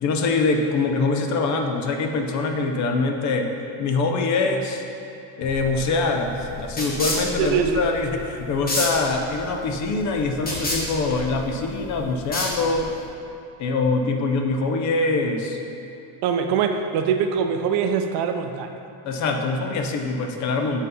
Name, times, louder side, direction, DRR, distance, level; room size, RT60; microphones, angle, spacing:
voice 1, 0.0-3.5 3.8-4.8 5.4-12.9 13.6-15.6 19.0-20.8, left 3 dB, 40° left, 4 dB, 0.5 m, -24 dB
spray mist, 5.4-13.1, left 1 dB, 20° left, 1.1 m, -31 dB
voice 2, 7.4-7.8 16.2-18.7, right 7 dB, 60° right, 6 dB, 0.5 m, -23 dB
5.4 x 4.1 x 5.4 m, 2.8 s
cardioid pair, 145°, 45 cm